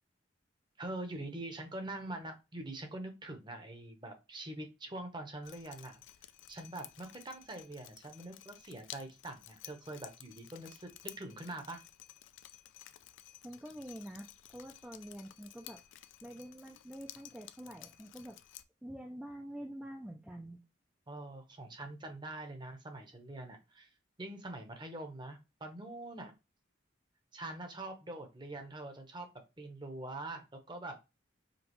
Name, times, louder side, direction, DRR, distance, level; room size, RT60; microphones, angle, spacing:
voice 1, 0.8-6.0 6.5-11.8 21.1-23.9 24.2-26.3 27.3-29.3 29.6-31.0, right 2 dB, 25° right, 5 dB, 0.8 m, -44 dB
Drip, 5.4-18.6, left 13 dB, 70° left, 0.4 m, -54 dB
voice 2, 13.4-15.8 16.2-18.4 18.8-20.6, right 1 dB, 5° right, 2 dB, 0.3 m, -46 dB
5.1 x 2.3 x 3.0 m, 0.26 s
head